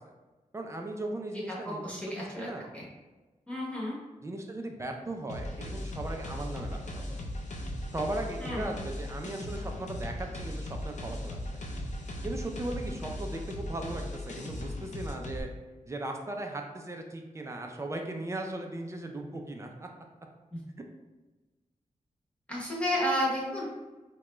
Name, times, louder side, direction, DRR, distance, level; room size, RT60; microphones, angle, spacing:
voice 1, 0.5-2.7 4.2-7.2 7.9-11.4 12.2-15.5 15.9-19.9, right 2 dB, 20° right, 3 dB, 0.4 m, -37 dB
voice 2, 1.5-2.5 2.7-2.8 3.5-3.9 8.4-8.8 20.5-20.6 22.5-23.6, equal, 10° left, -5 dB, 0.9 m, -32 dB
sound 1, 5.3-15.4, left 1 dB, 60° left, 0.6 m, -38 dB
4.8 x 2.2 x 3.0 m, 1.2 s
wide cardioid pair, 170°, 13 cm